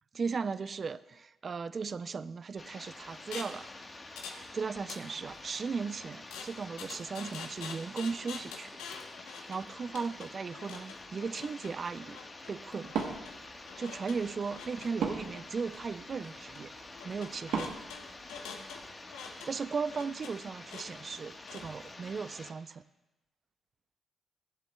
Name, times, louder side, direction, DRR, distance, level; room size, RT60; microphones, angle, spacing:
voice 1, 0.1-3.7 4.2-8.7 9.2-12.2 12.5-12.9 13.8-16.7 17.0-17.7 19.5-22.8, right 5 dB, 45° right, 15 dB, 0.4 m, -37 dB
sound 1, 2.6-22.5, left 2 dB, 30° left, 1.2 m, -48 dB
sound 2, 3.3-3.6 4.2-4.5 4.7-5.6 6.3-21.9, left 6 dB, 80° left, 0.8 m, -47 dB
Wood, 12.8-18.9, right 6 dB, 75° right, 1.0 m, -40 dB
14.0 x 7.6 x 2.2 m, 1.0 s
hypercardioid pair, 50°, 0 cm